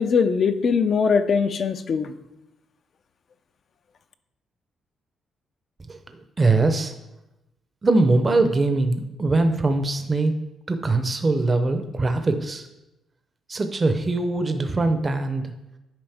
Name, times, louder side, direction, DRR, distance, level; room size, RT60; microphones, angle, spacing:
voice 1, 0.0-2.1, left 5 dB, 50° left, 10 dB, 0.5 m, -21 dB
voice 2, 5.9-6.9 7.8-10.3 10.7-12.7 13.5-15.5, right 2 dB, 30° right, 7 dB, 0.6 m, -22 dB
8.9 x 5.2 x 3.5 m, 0.95 s
cardioid pair, 90°, 0 cm